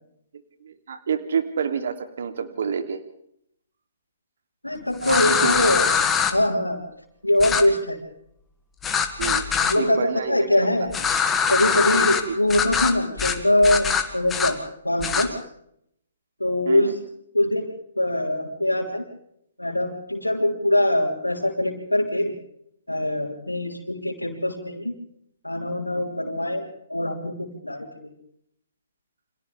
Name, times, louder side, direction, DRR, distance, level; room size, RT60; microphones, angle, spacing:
voice 1, 0.6-3.0 5.1-5.6 9.2-9.5 9.7-10.7 11.9-12.3 16.6-17.0, right 6 dB, 55° right, 7 dB, 2.8 m, -28 dB
voice 2, 4.6-6.0 6.3-6.8 7.2-8.0 9.6-10.9 11.5-15.4 16.4-17.0 17.3-19.0 19.6-22.3 22.9-24.9 25.4-26.6 26.9-28.1, left 1 dB, 90° left, -4 dB, 3.8 m, -23 dB
sound 1, 5.0-6.3 7.4-7.6 8.8-9.7 10.9-12.2 12.5-12.9 13.2-13.4 13.6-14.5 15.0-15.2, left 7 dB, 15° left, 2.0 m, -22 dB
29.5 x 26.0 x 3.5 m, 0.73 s
figure-of-eight pair, 125°, 0 cm